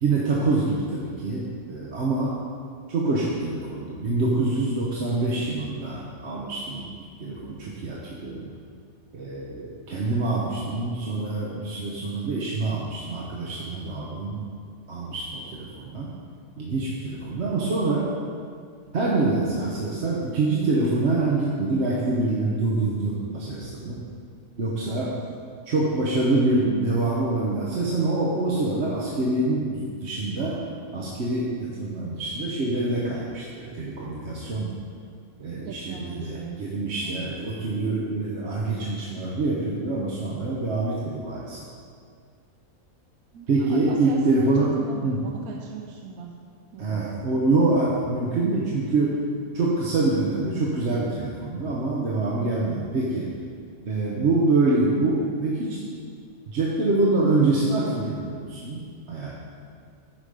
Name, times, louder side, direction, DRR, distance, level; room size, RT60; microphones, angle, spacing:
voice 1, 0.0-2.4 2.9-6.9 7.2-8.5 9.1-14.4 14.9-16.1 16.6-18.1 18.9-24.1 24.6-25.1 25.7-30.6 30.9-34.7 35.4-41.6 43.5-44.8 45.0-45.2 46.8-49.2 49.5-53.3 53.8-55.8 56.5-59.3, right 2 dB, 55° right, -4 dB, 1.1 m, -25 dB
voice 2, 3.1-3.5 24.9-25.1 35.6-36.6 37.0-37.3 43.3-46.3 46.7-47.0, right 7 dB, 80° right, 1 dB, 1.1 m, -38 dB
10.0 x 5.1 x 5.1 m, 2.2 s
omnidirectional pair, 1.5 m